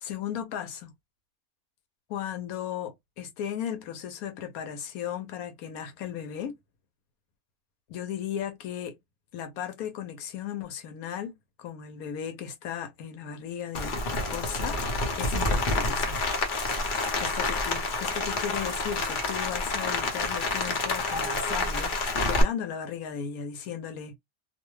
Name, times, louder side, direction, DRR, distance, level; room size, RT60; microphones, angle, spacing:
voice 1, 0.0-0.9 2.1-6.6 7.9-9.0 9.3-11.3 11.6-16.3 16.9-22.0 22.3-24.2, left 9 dB, 85° left, 1.1 m, -36 dB
Rain, 13.7-22.4, left 3 dB, 45° left, 0.8 m, -28 dB
2.6 x 2.1 x 3.1 m
omnidirectional pair, 1.5 m